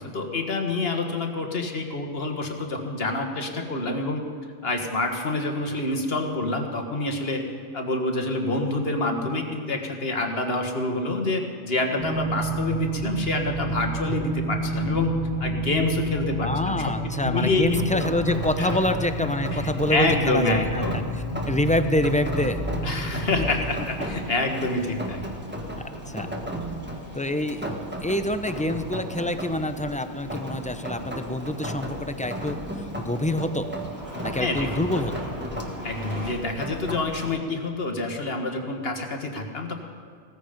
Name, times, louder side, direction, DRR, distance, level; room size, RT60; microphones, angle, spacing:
voice 1, 0.1-4.2 4.6-7.4 7.7-15.1 15.4-16.9 17.2-18.0 18.6-18.7 19.5-21.0 22.8-25.2 34.4-34.9 35.8-39.7, left 2 dB, 60° left, 3 dB, 1.7 m, -27 dB
sound 1, 12.0-23.6, right 2 dB, 35° right, 4.4 m, -30 dB
voice 2, 16.4-22.6 25.7-26.3 27.1-27.7 28.0-32.6 33.0-33.7 34.2-35.1, left 1 dB, 10° left, 9 dB, 0.4 m, -26 dB
Rain, 17.6-37.4, equal, 10° right, 1.4 m, -36 dB
Engine starting, 23.1-36.3, equal, 85° right, 5.5 m, -40 dB
16.5 x 14.0 x 5.2 m, 2.3 s
omnidirectional pair, 1.2 m